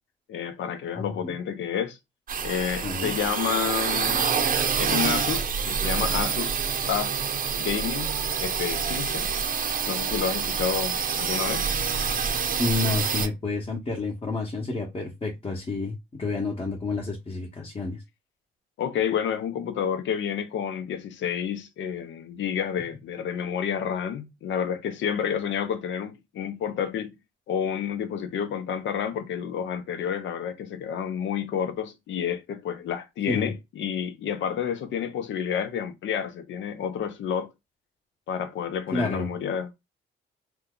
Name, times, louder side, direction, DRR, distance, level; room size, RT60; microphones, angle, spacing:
voice 1, 0.3-2.0 2.4-4.3 4.8-7.1 7.6-8.1 8.4-9.3 9.8-11.7 18.8-27.2 27.5-37.5 38.3-39.7, left 8 dB, 70° left, 0.7 m, -30 dB
voice 2, 1.0-1.3 2.8-3.1 12.6-18.0 33.3-33.5 38.9-39.3, left 3 dB, 30° left, 1.0 m, -29 dB
sound 1, 2.3-13.3, right 6 dB, 45° right, 0.7 m, -27 dB
2.8 x 2.3 x 3.7 m
cardioid pair, 90°, 20 cm